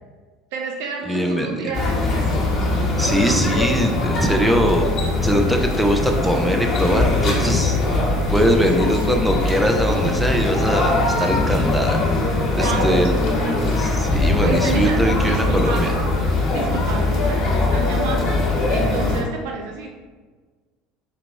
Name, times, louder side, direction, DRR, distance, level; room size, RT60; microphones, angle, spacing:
voice 1, 0.5-2.4 8.5-9.2 12.6-13.8 14.2-15.9 16.5-19.9, right 4 dB, 60° right, 1 dB, 0.4 m, -30 dB
voice 2, 1.1-1.7 3.0-5.0 5.2-7.8 8.3-12.0 12.5-13.1 13.8-15.9, equal, ahead, 2 dB, 0.5 m, -21 dB
sound 1, 1.7-19.2, left 2 dB, 40° left, 1.1 m, -21 dB
3.9 x 2.9 x 3.4 m, 1.4 s
figure-of-eight pair, 70°, 0 cm